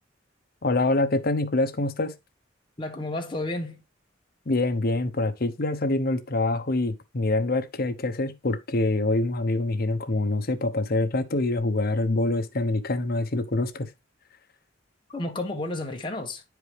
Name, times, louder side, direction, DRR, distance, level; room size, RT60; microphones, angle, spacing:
voice 1, 0.6-2.1 4.5-13.9, left 2 dB, 50° left, 0.8 m, -25 dB
voice 2, 2.8-3.8 15.1-16.4, left 2 dB, 25° left, 1.3 m, -31 dB
9.4 x 4.7 x 3.3 m
head